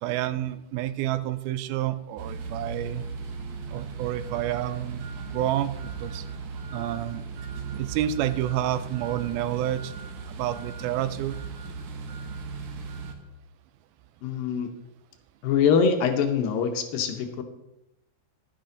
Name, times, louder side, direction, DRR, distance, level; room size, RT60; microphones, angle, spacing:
voice 1, 0.0-3.0 3.7-6.3 6.7-7.2 7.8-9.9 10.3-11.4, right 12 dB, 80° right, 13 dB, 2.4 m, -29 dB
sound 1, 2.2-13.1, right 4 dB, 65° right, 2.1 m, -37 dB
voice 2, 14.2-14.7 15.4-17.4, left 6 dB, 75° left, 6 dB, 2.5 m, -24 dB
11.5 x 10.0 x 3.9 m, 0.89 s
omnidirectional pair, 4.4 m